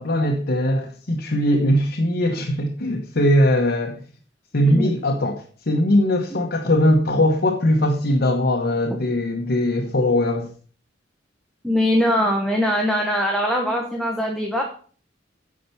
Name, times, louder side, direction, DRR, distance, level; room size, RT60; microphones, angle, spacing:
voice 1, 0.0-4.0 4.5-10.5, left 1 dB, 60° left, 2 dB, 1.1 m, -20 dB
voice 2, 4.6-4.9 11.6-14.6, equal, ahead, 0 dB, 1.2 m, -21 dB
10.0 x 4.5 x 6.8 m, 0.43 s
head